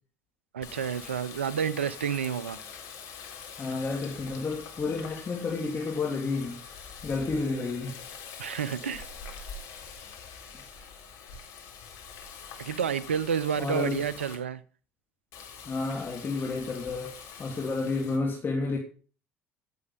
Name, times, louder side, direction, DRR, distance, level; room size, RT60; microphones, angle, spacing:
voice 1, 0.5-2.6 8.4-9.1 12.6-14.6, right 7 dB, 85° right, 0.7 m, -30 dB
Water tap faucet, 0.6-14.4 15.3-18.2, left 6 dB, 60° left, 3.7 m, -45 dB
voice 2, 3.6-6.6 7.0-8.0 13.5-14.1 15.6-18.8, left 3 dB, 35° left, 3.3 m, -31 dB
16.5 x 7.9 x 5.1 m
hypercardioid pair, 60°, 6 cm